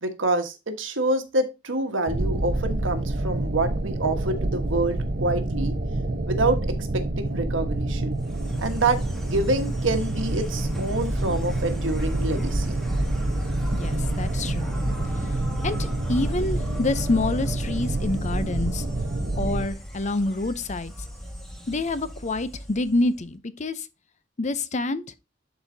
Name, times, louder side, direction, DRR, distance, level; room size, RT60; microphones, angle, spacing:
voice 1, 0.0-5.8 6.2-8.2 8.6-12.8, right 2 dB, 85° right, 1.4 m, -27 dB
sound 1, 2.1-19.7, right 2 dB, 50° right, 0.9 m, -28 dB
Insect, 8.2-23.2, equal, ahead, 1.7 m, -34 dB
voice 2, 13.7-14.7 15.6-18.8 19.3-20.9 21.7-23.9 24.4-25.0, left 2 dB, 40° left, 0.6 m, -27 dB
12.0 x 4.1 x 2.7 m
head